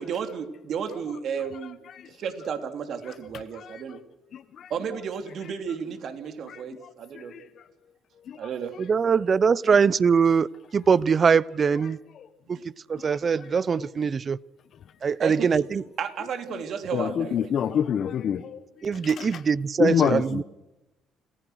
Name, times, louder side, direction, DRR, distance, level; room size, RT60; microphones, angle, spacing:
voice 1, 0.0-1.8 2.1-4.0 4.7-7.3 8.3-9.2 10.2-10.4 12.5-12.6 15.2-17.6, right 7 dB, 60° right, 3.0 m, -33 dB
voice 2, 8.8-10.5 10.7-12.0 12.5-12.6 12.9-14.4 15.0-15.8 18.8-20.4, right 6 dB, 40° right, 0.7 m, -22 dB
voice 3, 16.9-18.4 19.2-19.3 19.8-20.4, left 8 dB, 55° left, 1.1 m, -24 dB
28.5 x 15.5 x 6.4 m
supercardioid pair, 70°, 0 cm